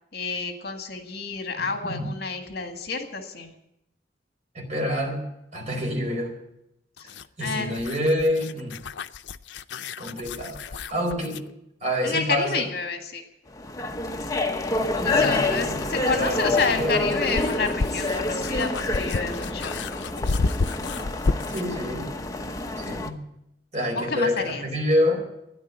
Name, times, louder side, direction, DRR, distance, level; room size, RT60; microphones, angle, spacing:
voice 1, 0.1-3.5 7.0-7.1 7.4-7.8 12.0-13.2 15.0-19.8 23.9-24.6, left 4 dB, 65° left, 5 dB, 1.9 m, -29 dB
voice 2, 4.5-5.3 5.5-6.3 7.0-8.7 10.0-11.4 11.8-12.6 14.9-17.1 21.5-22.1 22.8-23.2 23.7-25.2, left 1 dB, 40° right, 0 dB, 4.6 m, -27 dB
sound 1, 7.0-11.5 13.9-14.0 15.9-21.8, left 3 dB, 80° left, 0.5 m, -31 dB
sound 2, 13.5-23.1, left 2 dB, 20° left, 1.0 m, -27 dB
12.5 x 10.5 x 9.3 m, 0.83 s
head